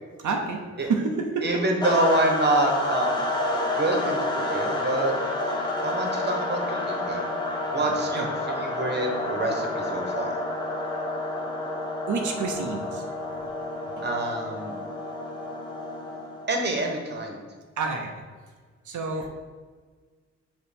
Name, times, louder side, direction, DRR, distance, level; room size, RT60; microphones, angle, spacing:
voice 1, 0.2-1.5 8.2-8.3 12.1-13.0 17.8-18.1 18.9-19.3, right 4 dB, 90° right, 2 dB, 0.8 m, -28 dB
voice 2, 1.4-3.1 3.8-5.1 5.8-7.3 7.7-10.4 14.0-14.8 16.5-17.4, right 2 dB, 35° right, 1 dB, 1.3 m, -26 dB
sound 1, 1.8-16.6, left 1 dB, 15° left, 1.1 m, -29 dB
7.0 x 3.0 x 5.2 m, 1.5 s
wide cardioid pair, 95°, 29 cm